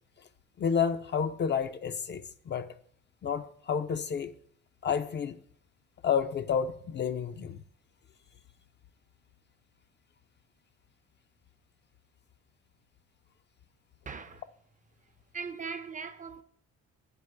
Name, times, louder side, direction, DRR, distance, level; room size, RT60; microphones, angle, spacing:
voice 1, 0.6-2.7 3.2-4.3 4.8-5.3 6.0-7.6, left 7 dB, 40° left, 0.4 m, -30 dB
voice 2, 14.1-14.4 15.3-16.4, right 5 dB, 25° right, 0.4 m, -39 dB
9.6 x 4.3 x 3.2 m
cardioid pair, 90°, 30 cm